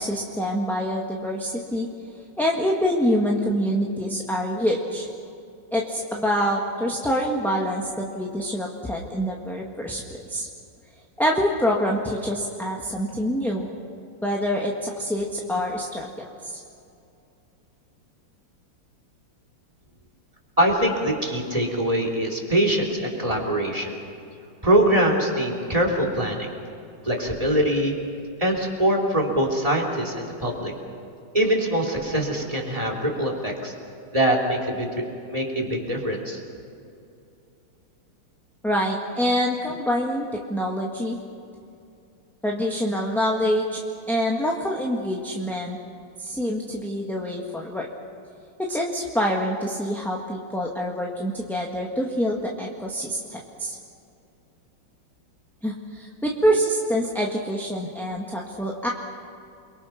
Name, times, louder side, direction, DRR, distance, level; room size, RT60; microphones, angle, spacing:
voice 1, 0.0-1.9 2.4-5.1 5.7-10.0 10.3-10.5 11.2-13.7 14.2-16.6 38.6-41.2 42.4-43.8 44.1-45.8 46.2-47.9 48.7-53.8 55.6-58.9, equal, ahead, -2 dB, 1.6 m, -26 dB
voice 2, 20.6-23.9 24.6-26.5 27.0-27.9 28.4-30.7 31.3-33.7 34.1-34.9 35.3-36.4, right 1 dB, 15° right, 1 dB, 3.4 m, -23 dB
29.5 x 23.0 x 5.9 m, 2.6 s
omnidirectional pair, 2.3 m